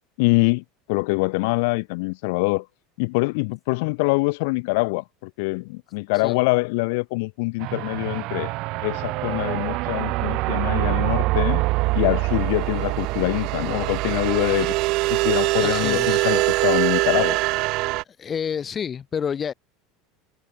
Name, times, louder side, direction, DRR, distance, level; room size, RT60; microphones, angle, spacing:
voice 1, 0.2-0.6 0.9-2.6 3.0-8.5 8.8-11.6 11.9-14.7 15.1-17.4, left 28 dB, 70° left, 1.1 m, -24 dB
sound 1, 7.6-18.0, right 22 dB, 55° right, 0.4 m, -24 dB
voice 2, 15.6-16.2 18.2-19.5, left 7 dB, 25° left, 0.5 m, -29 dB
supercardioid pair, 125°, 0 cm